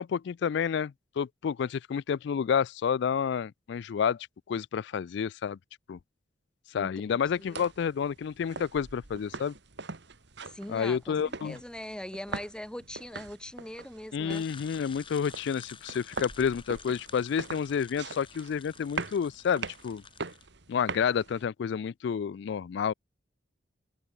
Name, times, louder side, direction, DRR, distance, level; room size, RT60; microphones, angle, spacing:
voice 1, 0.0-5.6 5.9-6.0 6.7-9.5 10.7-11.6 14.1-20.0 20.7-22.9, left 7 dB, 65° left, 0.3 m, -30 dB
voice 2, 6.7-7.7 10.5-14.4, left 1 dB, 5° left, 0.5 m, -42 dB
sound 1, 7.2-21.4, right 4 dB, 65° right, 1.9 m, -42 dB
sound 2, 14.3-20.5, left 7 dB, 25° left, 1.2 m, -50 dB
head